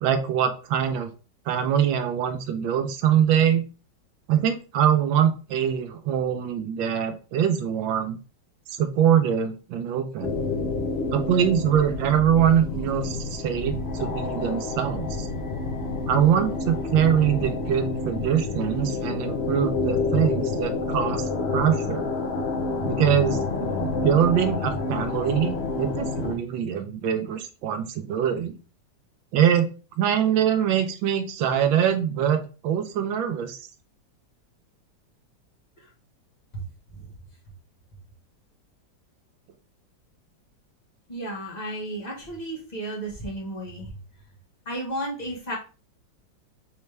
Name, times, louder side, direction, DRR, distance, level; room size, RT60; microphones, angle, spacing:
voice 1, 0.0-1.1 1.5-3.6 4.3-8.2 8.7-10.4 11.1-15.3 16.1-21.2 21.5-22.1 22.8-28.5 29.3-29.7 30.0-33.6, right 9 dB, 90° right, 8 dB, 1.4 m, -23 dB
sound 1, 10.2-26.3, left 3 dB, 75° left, 0.5 m, -28 dB
voice 2, 41.1-43.9 44.6-45.6, right 1 dB, 25° left, -2 dB, 1.2 m, -33 dB
4.1 x 3.3 x 3.2 m, 0.34 s
omnidirectional pair, 2.1 m